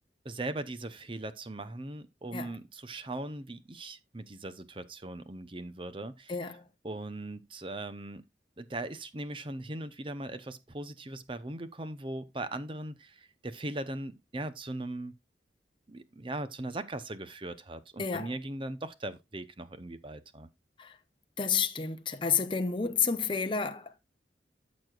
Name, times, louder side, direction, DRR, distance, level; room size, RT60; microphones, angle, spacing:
voice 1, 0.2-6.3 6.8-8.2 8.6-15.1 15.9-20.5, right 2 dB, 30° right, 0.8 m, -39 dB
voice 2, 6.3-6.6 18.0-18.3 20.8-21.0 21.4-24.0, left 6 dB, 30° left, 0.8 m, -30 dB
14.0 x 6.2 x 2.4 m
head